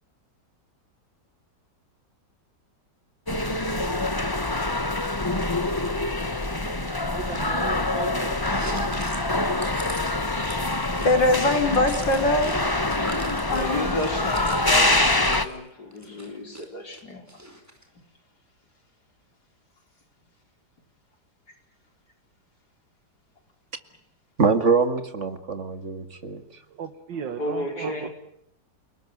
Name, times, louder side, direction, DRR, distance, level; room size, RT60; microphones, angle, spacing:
sound 1, 3.3-15.5, left 2 dB, 15° left, 1.2 m, -25 dB
voice 1, 7.0-8.5 9.1-9.3 26.7-28.1, right 7 dB, 80° right, 2.2 m, -36 dB
Chewing mastication, 8.5-12.6 12.8-15.5 15.9-16.7 16.9-17.8, right 1 dB, 10° right, 4.7 m, -39 dB
voice 2, 11.0-12.6 13.4-13.9, left 2 dB, 80° left, 4.6 m, -22 dB
voice 3, 13.3-17.4 27.1-28.1, left 2 dB, 60° left, 5.3 m, -33 dB
voice 4, 24.4-26.4, right 4 dB, 40° right, 2.3 m, -23 dB
29.5 x 19.5 x 9.4 m
omnidirectional pair, 2.0 m